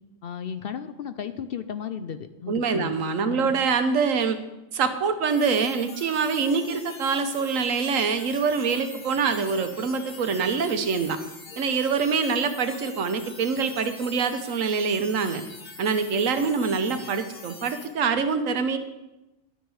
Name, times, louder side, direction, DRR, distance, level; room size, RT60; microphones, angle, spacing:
voice 1, 0.2-3.5, left 7 dB, 60° left, 11 dB, 0.7 m, -35 dB
voice 2, 2.5-4.4 4.7-11.2 11.6-15.4 15.8-18.8, right 5 dB, 90° right, 9 dB, 1.3 m, -25 dB
sound 1, 5.3-17.9, left 3 dB, 85° left, 2.2 m, -44 dB
11.5 x 9.2 x 4.8 m, 1.0 s
omnidirectional pair, 1.3 m